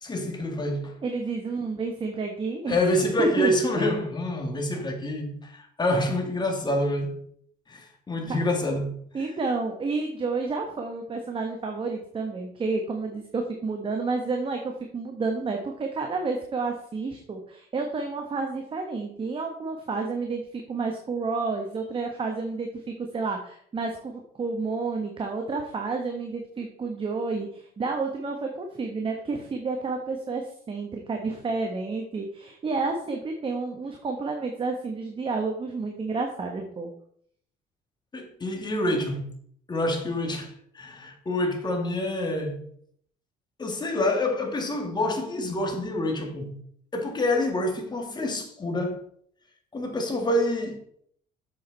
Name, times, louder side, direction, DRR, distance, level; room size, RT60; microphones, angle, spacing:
voice 1, 0.0-1.0 2.7-7.2 7.7-9.0 38.1-39.3 39.7-42.6 43.6-46.6 46.9-49.0 49.7-50.8, left 1 dB, 25° left, 2.2 m, -27 dB
voice 2, 1.0-3.9 8.3-8.4 9.1-36.9, right 3 dB, 30° right, 1.4 m, -30 dB
7.7 x 7.4 x 4.1 m
cardioid pair, 110°, 17 cm